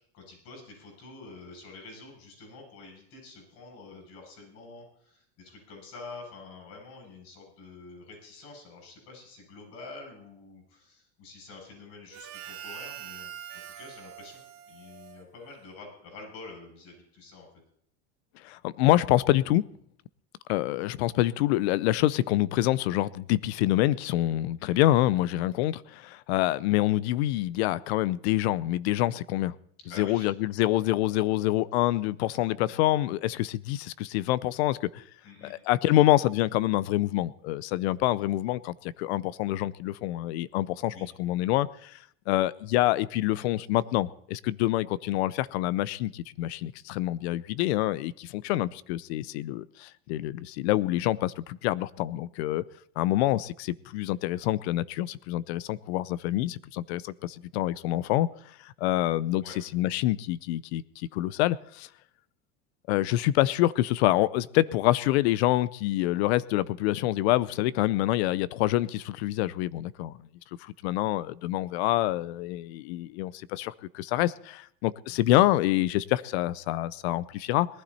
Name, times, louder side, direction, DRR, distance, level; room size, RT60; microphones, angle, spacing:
voice 1, 0.1-14.4 14.7-17.5 24.6-24.9 29.8-30.3 35.2-35.5 40.9-41.1 59.4-59.6 75.1-75.3, left 3 dB, 50° left, 7.4 m, -47 dB
Harmonica, 12.1-15.9, right 11 dB, 45° right, 2.2 m, -44 dB
voice 2, 18.4-19.7 20.5-29.5 30.0-35.0 35.5-42.0 42.3-52.6 53.0-58.3 58.6-61.9 62.9-70.1 70.6-77.7, left 15 dB, 80° left, 0.7 m, -26 dB
19.5 x 11.5 x 4.2 m
supercardioid pair, 140°, 32 cm